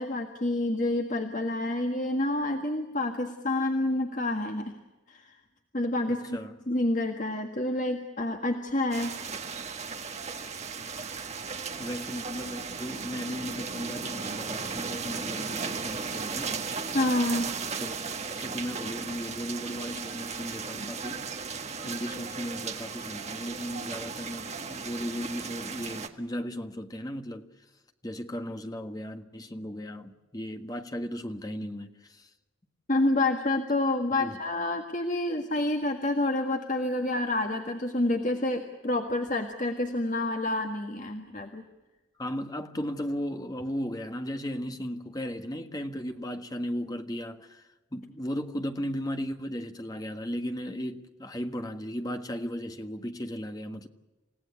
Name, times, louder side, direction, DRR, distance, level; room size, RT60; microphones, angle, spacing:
voice 1, 0.0-4.8 5.1-5.4 5.7-6.4 6.7-9.2 16.9-17.5 32.9-41.6, left 2 dB, 40° left, 1.7 m, -28 dB
voice 2, 6.1-6.5 11.8-16.6 17.8-21.3 21.8-27.5 28.0-32.3 34.2-34.4 42.2-47.6 47.9-53.9, equal, 20° left, 1.6 m, -36 dB
sound 1, 8.9-26.1, right 5 dB, 35° right, 1.6 m, -36 dB
29.5 x 17.0 x 8.2 m
head